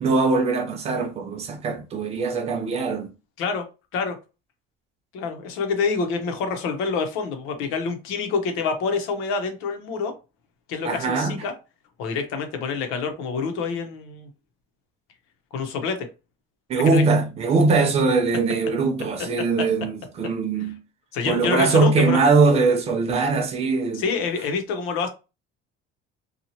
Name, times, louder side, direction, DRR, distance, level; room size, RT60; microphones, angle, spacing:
voice 1, 0.0-3.1 10.8-11.4 16.7-20.8 21.3-24.0, right 4 dB, 30° right, 0.4 m, -21 dB
voice 2, 5.1-10.1 10.7-11.5 12.0-14.3 15.5-16.1 16.9-17.0 21.1-22.2 23.9-25.1, left 5 dB, 80° left, 0.9 m, -27 dB
2.9 x 2.4 x 2.8 m
cardioid pair, 175°, 21 cm